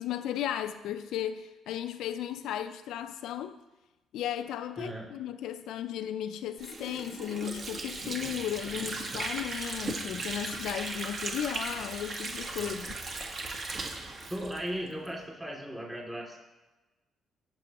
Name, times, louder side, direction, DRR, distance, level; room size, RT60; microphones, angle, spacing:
voice 1, 0.0-3.6 4.1-12.9, left 11 dB, 85° left, 0.4 m, -35 dB
voice 2, 4.8-5.1 12.6-12.8 14.3-16.4, equal, 10° right, 2.4 m, -37 dB
Water / Sink (filling or washing), 6.6-15.1, right 3 dB, 50° right, 1.4 m, -37 dB
15.5 x 6.1 x 2.9 m
cardioid pair, 90°, 0 cm